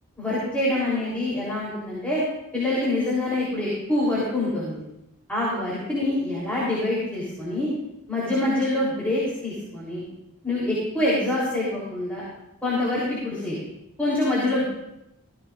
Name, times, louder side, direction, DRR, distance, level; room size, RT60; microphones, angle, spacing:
voice 1, 0.2-2.2 2.5-4.8 5.3-7.7 8.1-10.0 10.4-12.3 12.6-13.6 14.0-14.6, left 1 dB, 5° left, -8 dB, 3.7 m, -25 dB
16.5 x 14.5 x 2.6 m, 0.85 s
head